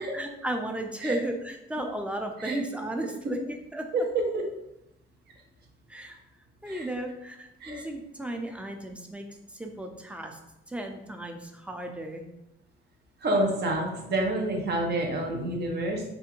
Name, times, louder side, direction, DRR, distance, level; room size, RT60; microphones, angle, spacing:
voice 1, 0.0-3.9 5.9-6.2 6.6-10.4 10.7-12.3, right 1 dB, 5° right, 4 dB, 0.4 m, -35 dB
voice 2, 13.2-16.0, right 1 dB, 55° right, 1 dB, 0.8 m, -28 dB
3.5 x 2.5 x 2.9 m, 0.89 s
cardioid pair, 90°, 20 cm